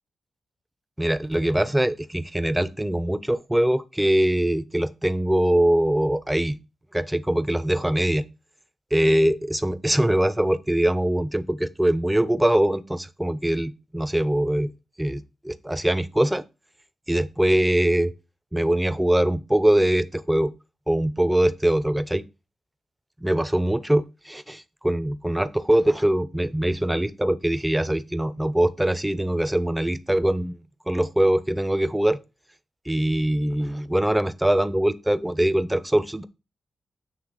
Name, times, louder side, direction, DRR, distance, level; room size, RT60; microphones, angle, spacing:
voice 1, 1.0-6.6 6.9-8.3 8.9-14.7 15.0-16.4 17.1-18.1 18.5-20.5 20.9-22.2 23.2-30.6 30.9-32.2 32.9-36.2, right 1 dB, 10° right, 0.6 m, -22 dB
8.0 x 3.3 x 4.9 m
cardioid pair, 60°, 0 cm